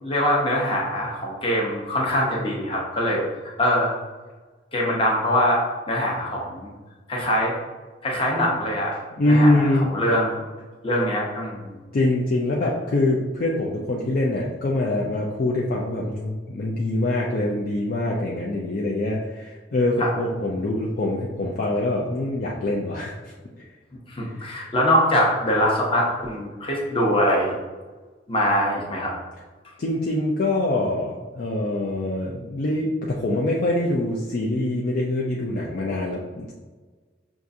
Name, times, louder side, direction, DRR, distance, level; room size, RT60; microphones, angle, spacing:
voice 1, 0.0-3.2 3.6-3.9 4.7-5.6 5.9-6.7 7.1-7.5 8.0-9.0 9.3-10.4 10.8-11.7 20.0-20.1 24.1-27.5 28.3-29.1, equal, 30° left, -3 dB, 0.8 m, -23 dB
voice 2, 9.2-9.9 11.9-23.1 29.8-36.5, left 1 dB, 50° left, -3 dB, 0.4 m, -24 dB
5.8 x 2.4 x 2.6 m, 1.3 s
head